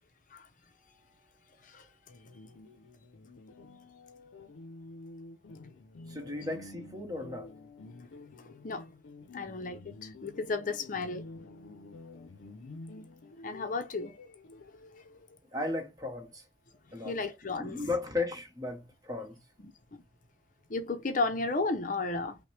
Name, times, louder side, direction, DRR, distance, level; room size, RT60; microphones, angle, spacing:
sound 1, 2.1-15.4, left 2 dB, 90° left, 0.5 m, -50 dB
voice 1, 6.1-7.5 15.5-16.4 16.9-17.1 17.6-19.4, left 3 dB, 20° right, 1.0 m, -35 dB
voice 2, 8.4-8.9 9.3-11.3 13.4-14.2 17.0-17.8 19.6-19.7 20.7-22.4, left 3 dB, 45° left, 0.6 m, -33 dB
5.7 x 2.1 x 3.2 m
head